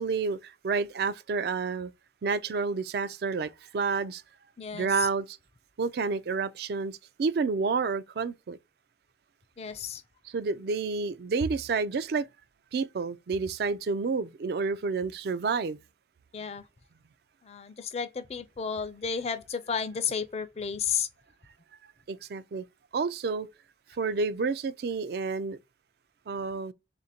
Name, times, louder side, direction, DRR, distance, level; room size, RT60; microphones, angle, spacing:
voice 1, 0.0-1.9 2.2-4.2 4.7-5.4 5.8-8.6 10.2-12.3 12.7-15.8 22.1-22.6 22.9-23.5 23.9-25.6 26.3-26.7, right 4 dB, 60° right, 0.4 m, -29 dB
voice 2, 4.6-5.1 9.6-10.0 16.3-16.6 17.4-21.1, left 6 dB, 35° left, 0.4 m, -32 dB
3.6 x 2.5 x 4.2 m
head